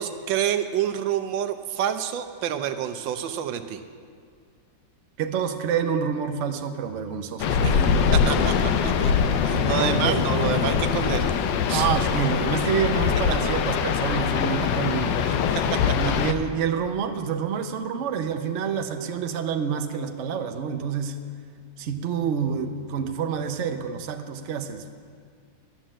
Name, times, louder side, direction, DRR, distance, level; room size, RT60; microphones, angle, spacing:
voice 1, 0.0-3.8 7.6-11.3 11.7-11.9 15.2-16.0, right 10 dB, 80° right, 9 dB, 1.4 m, -28 dB
voice 2, 5.2-8.0 9.8-10.2 11.7-15.2 15.9-21.2 21.8-24.9, right 7 dB, 55° right, 6 dB, 0.8 m, -28 dB
sound 1, 7.4-16.3, left 6 dB, 75° left, 1.4 m, -23 dB
12.0 x 9.0 x 7.4 m, 2.1 s
omnidirectional pair, 2.0 m